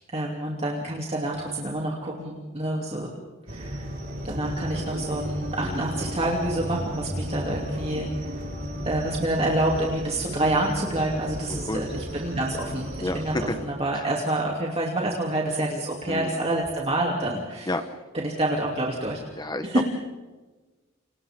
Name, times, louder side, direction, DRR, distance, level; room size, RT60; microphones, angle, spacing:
voice 1, 0.1-3.1 3.5-3.9 4.2-8.3 8.8-17.7 18.1-19.2 19.6-19.8, right 1 dB, 30° right, -2 dB, 3.1 m, -27 dB
sound 1, 3.5-13.5, equal, 50° right, 6.0 m, -35 dB
sound 2, 4.3-10.5 10.8-11.8 12.1-12.4 12.8-13.0, equal, 90° right, 7.5 m, -41 dB
voice 2, 13.0-13.5 13.9-14.0 16.1-16.4 17.7-17.8 19.4-19.8, left 2 dB, 20° left, 8 dB, 1.2 m, -30 dB
30.0 x 27.5 x 3.8 m, 1.2 s
head